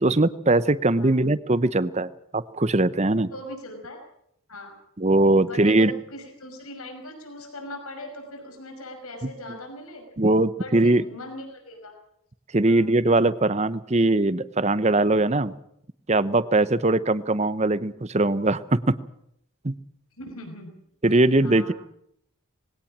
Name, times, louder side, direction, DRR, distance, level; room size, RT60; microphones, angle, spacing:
voice 1, 0.0-3.3 5.0-5.9 9.2-9.3 10.2-11.0 12.5-15.5 16.1-18.8 19.6-19.7 21.0-21.7, right 2 dB, 30° right, 16 dB, 0.9 m, -21 dB
voice 2, 3.3-4.0 4.5-4.7 5.4-10.0 10.6-11.9 12.7-12.8 20.2-20.7 21.4-21.7, left 1 dB, 85° left, 4 dB, 5.8 m, -40 dB
21.5 x 17.5 x 7.4 m, 0.72 s
head